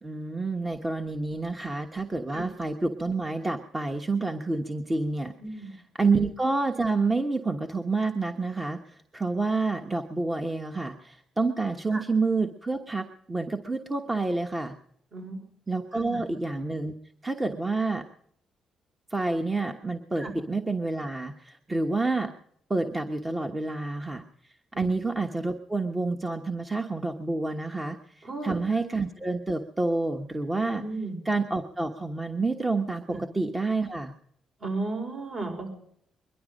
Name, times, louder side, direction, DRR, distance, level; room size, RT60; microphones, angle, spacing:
voice 1, 0.0-14.7 15.7-16.9 17.2-18.0 19.1-22.3 22.7-30.8 31.2-34.1, right 3 dB, 20° right, 5 dB, 1.2 m, -29 dB
voice 2, 5.4-5.7 11.9-12.0 15.1-15.4 15.9-16.2 20.2-20.3 24.7-24.9 28.2-28.6 30.8-31.2 33.1-33.2 34.6-35.7, right 2 dB, 50° right, 3 dB, 5.5 m, -34 dB
22.0 x 11.5 x 5.2 m, 0.67 s
cardioid pair, 90°, 0 cm